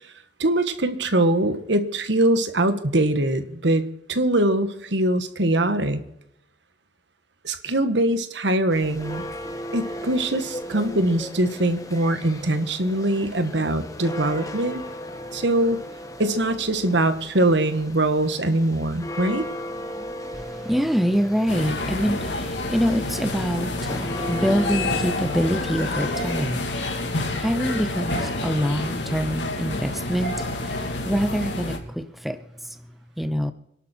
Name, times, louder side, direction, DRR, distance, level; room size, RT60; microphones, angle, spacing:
voice 1, 0.4-6.0 7.4-9.2 9.7-14.8 15.3-15.8 16.2-19.5, right 1 dB, 75° right, 1.5 m, -22 dB
sound 1, 8.7-26.2, equal, 20° left, 1.5 m, -36 dB
voice 2, 20.3-32.8 33.2-33.5, equal, ahead, 0.7 m, -25 dB
sound 2, 21.5-31.8, left 2 dB, 75° left, 3.0 m, -28 dB
26.0 x 12.0 x 4.4 m
head